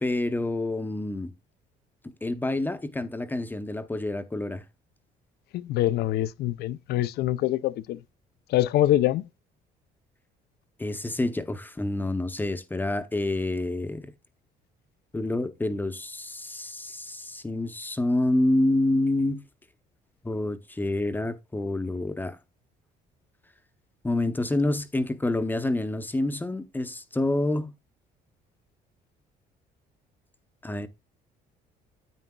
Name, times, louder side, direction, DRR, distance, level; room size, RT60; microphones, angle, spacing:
voice 1, 0.0-1.3 2.2-4.6 10.8-14.1 15.1-19.4 20.2-22.4 24.0-27.7 30.6-30.9, left 2 dB, 10° left, 0.7 m, -28 dB
voice 2, 5.5-8.0 8.5-9.2, left 14 dB, 70° left, 0.5 m, -24 dB
9.4 x 8.9 x 2.3 m
cardioid pair, 110°, 17 cm